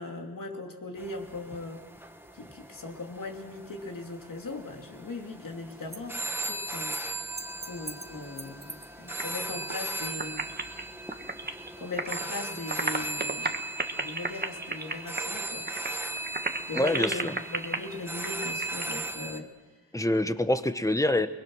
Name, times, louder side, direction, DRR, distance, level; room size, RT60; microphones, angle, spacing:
voice 1, 0.0-1.9 2.3-7.0 7.7-10.5 11.8-13.6 14.0-15.7 16.7-19.5, left 3 dB, 65° left, 2 dB, 2.9 m, -39 dB
sound 1, 1.0-19.4, right 2 dB, 5° right, 1.6 m, -38 dB
sound 2, 5.7-6.0 6.4-6.5 6.8-7.0 7.4-9.3 9.5-9.9 10.2-12.3 12.6-19.0, right 3 dB, 25° right, 1.5 m, -35 dB
voice 2, 16.7-17.3 19.9-21.3, left 1 dB, 10° left, 11 dB, 1.1 m, -25 dB
29.5 x 21.5 x 6.3 m, 1.4 s
wide cardioid pair, 100°, 35 cm